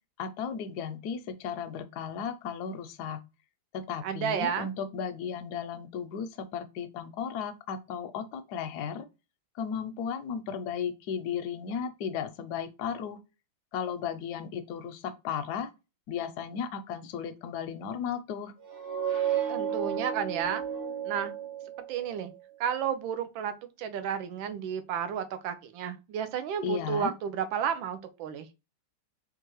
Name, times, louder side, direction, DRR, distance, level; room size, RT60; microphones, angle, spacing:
voice 1, 0.2-3.2 3.7-9.1 9.6-13.2 13.7-15.7 16.1-18.5 26.6-27.1, left 7 dB, 75° left, 1.0 m, -35 dB
voice 2, 4.0-4.7 19.5-20.6 21.0-21.3 21.9-22.3 22.6-28.5, right 8 dB, 80° right, 1.4 m, -32 dB
sound 1, 18.6-22.2, right 9 dB, 60° right, 2.0 m, -32 dB
4.5 x 2.5 x 3.0 m
omnidirectional pair, 2.1 m